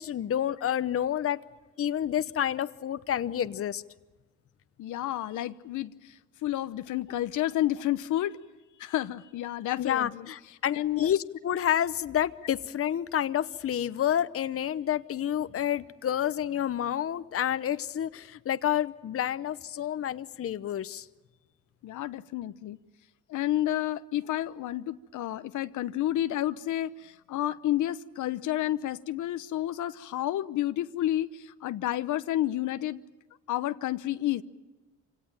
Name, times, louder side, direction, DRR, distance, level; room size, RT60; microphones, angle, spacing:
voice 1, 0.0-1.4 1.8-3.8 9.8-21.1, left 10 dB, 50° left, 0.9 m, -29 dB
voice 2, 4.8-8.4 8.8-10.3 10.7-11.1 21.8-22.8 23.3-33.0 33.5-34.4, left 13 dB, 80° left, 0.9 m, -30 dB
26.5 x 17.5 x 9.1 m
cardioid pair, 90°, 30 cm